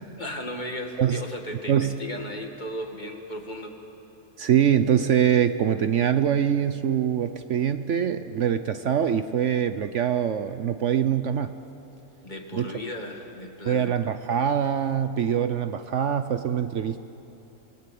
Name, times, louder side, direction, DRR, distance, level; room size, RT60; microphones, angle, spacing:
voice 1, 0.2-3.8 12.2-13.9, left 1 dB, 30° left, 2 dB, 2.3 m, -35 dB
voice 2, 4.4-11.6 12.5-12.7 13.7-17.0, right 9 dB, 60° right, 10 dB, 1.0 m, -24 dB
28.5 x 19.5 x 8.6 m, 2.9 s
omnidirectional pair, 1.5 m